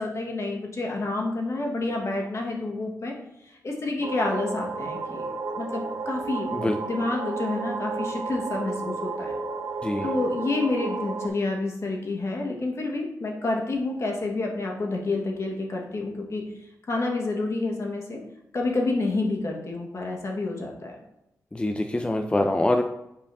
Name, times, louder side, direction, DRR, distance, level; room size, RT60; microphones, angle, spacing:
voice 1, 0.0-3.1 3.4-9.3 10.0-16.4 16.9-18.2 18.5-21.0, left 2 dB, 50° left, 0 dB, 1.4 m, -29 dB
sound 1, 4.0-11.3, right 4 dB, 60° right, 0.6 m, -32 dB
voice 2, 21.5-22.8, left 1 dB, 15° left, 4 dB, 0.4 m, -24 dB
7.1 x 5.0 x 2.7 m, 0.85 s
cardioid pair, 75°, 6 cm